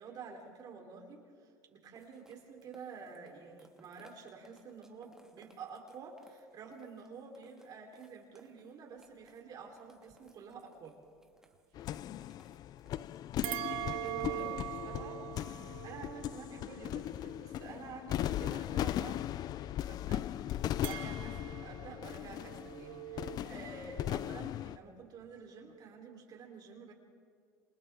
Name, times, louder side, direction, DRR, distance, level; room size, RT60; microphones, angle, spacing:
voice 1, 0.0-11.0 13.4-15.6 15.8-20.3 20.8-26.9, right 5 dB, 50° right, 0 dB, 4.0 m, -50 dB
sound 1, 1.9-14.8, right 1 dB, 5° right, 2.3 m, -61 dB
sound 2, 11.8-24.8, left 12 dB, 50° left, 0.5 m, -38 dB
sound 3, 13.4-17.9 20.8-23.4, right 15 dB, 75° right, 1.1 m, -42 dB
29.0 x 25.5 x 3.8 m, 2.1 s
supercardioid pair, 85°, 8 cm